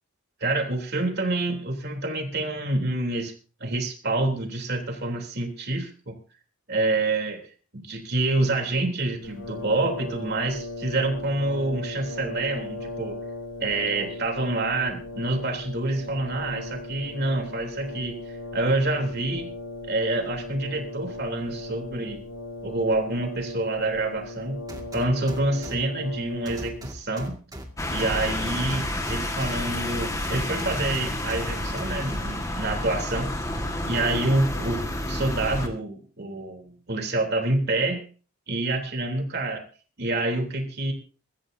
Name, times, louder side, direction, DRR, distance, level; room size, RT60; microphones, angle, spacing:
voice 1, 0.4-3.3 3.6-6.1 6.7-7.5 7.7-13.2 13.6-19.5 19.8-22.2 22.6-24.6 24.9-27.4 27.9-33.3 33.9-34.8 35.1-38.1 38.5-39.6 40.0-40.9, right 2 dB, 45° right, 2 dB, 3.4 m, -27 dB
Brass instrument, 9.2-27.0, left 2 dB, 75° left, 7.6 m, -37 dB
sound 1, 24.7-25.8 26.5-27.6 28.0-29.5 30.2-31.4 31.8-32.2, right 1 dB, 15° right, 2.1 m, -38 dB
sound 2, 27.8-35.7, left 1 dB, 15° left, 1.7 m, -30 dB
22.5 x 14.0 x 2.8 m, 0.38 s
head